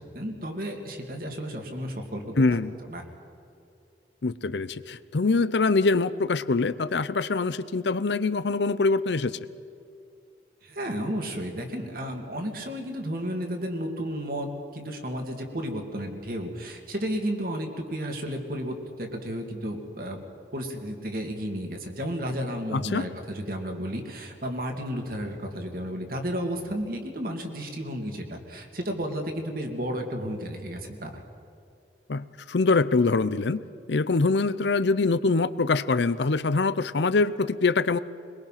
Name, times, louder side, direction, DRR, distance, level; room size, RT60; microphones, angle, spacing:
voice 1, 0.0-2.6 2.9-3.0 10.6-20.2 20.5-31.2, equal, 55° right, 3 dB, 2.6 m, -33 dB
voice 2, 2.4-2.7 4.2-9.4 22.7-23.1 32.1-33.6 33.9-38.0, left 3 dB, 80° left, 15 dB, 0.6 m, -24 dB
22.5 x 22.0 x 5.9 m, 2.6 s
head